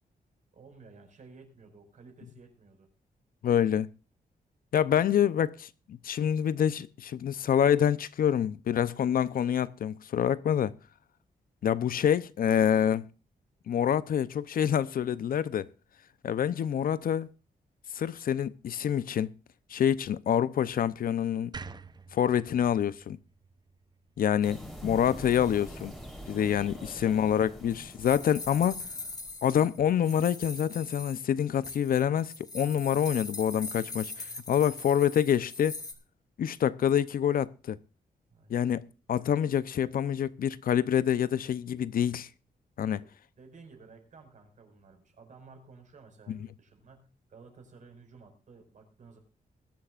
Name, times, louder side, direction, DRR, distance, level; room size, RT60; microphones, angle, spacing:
voice 1, 0.5-2.9 26.3-27.1 38.3-38.6 42.8-43.1 43.4-49.2, right 4 dB, 55° right, 5.4 m, -54 dB
voice 2, 3.4-3.9 4.7-10.7 11.6-13.1 13.7-15.7 16.2-17.3 17.9-19.3 19.7-21.5 22.1-23.2 24.2-25.9 26.3-28.8 29.4-35.8 36.4-37.8 38.5-42.3 42.8-43.0, left 9 dB, 70° left, 0.7 m, -27 dB
sound 1, 21.5-24.7, right 4 dB, 30° right, 0.7 m, -47 dB
sound 2, 24.4-29.3, equal, ahead, 3.8 m, -44 dB
sound 3, 27.0-35.9, left 3 dB, 25° left, 2.2 m, -42 dB
21.5 x 11.5 x 2.5 m
wide cardioid pair, 145°, 15 cm